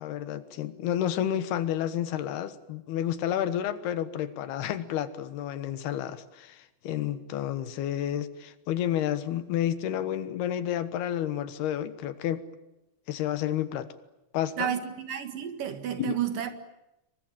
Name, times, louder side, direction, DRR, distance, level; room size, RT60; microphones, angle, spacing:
voice 1, 0.0-12.5 13.1-13.9 14.3-14.7 16.0-16.1, left 11 dB, 75° left, 3.2 m, -30 dB
voice 2, 14.6-16.5, right 9 dB, 60° right, 3.2 m, -31 dB
27.0 x 23.5 x 9.1 m
omnidirectional pair, 4.9 m